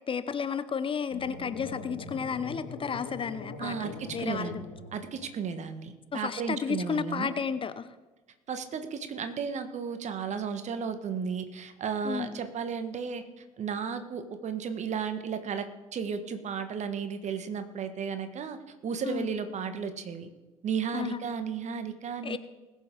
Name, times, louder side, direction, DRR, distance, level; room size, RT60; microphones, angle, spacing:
voice 1, 0.1-4.6 6.1-7.9 12.0-12.3 19.0-19.3 20.9-21.2 22.2-22.4, left 6 dB, 30° left, 13 dB, 0.8 m, -32 dB
sound 1, 1.1-5.4, left 3 dB, 60° left, 3.1 m, -42 dB
voice 2, 3.6-4.6 4.9-7.4 8.5-13.2 13.6-20.3 20.6-22.4, right 6 dB, 45° right, 10 dB, 1.5 m, -34 dB
20.5 x 7.0 x 4.7 m, 1.2 s
figure-of-eight pair, 50°, 17 cm